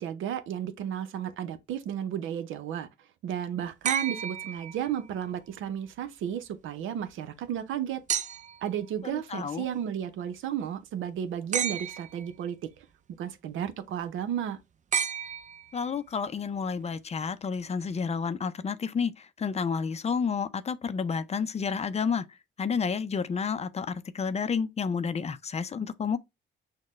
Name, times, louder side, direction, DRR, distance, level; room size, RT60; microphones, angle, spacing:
voice 1, 0.0-2.9 3.2-8.0 8.6-12.6 13.2-14.6, right 9 dB, 80° right, 0.7 m, -33 dB
sound 1, 3.9-5.2 8.1-8.7 11.5-12.3 14.9-16.0 17.5-17.6, right 8 dB, 40° right, 0.4 m, -32 dB
voice 2, 9.0-9.6 15.7-22.3 22.6-26.2, left 6 dB, 35° left, 0.5 m, -30 dB
6.3 x 2.2 x 3.1 m
cardioid pair, 90°, 20 cm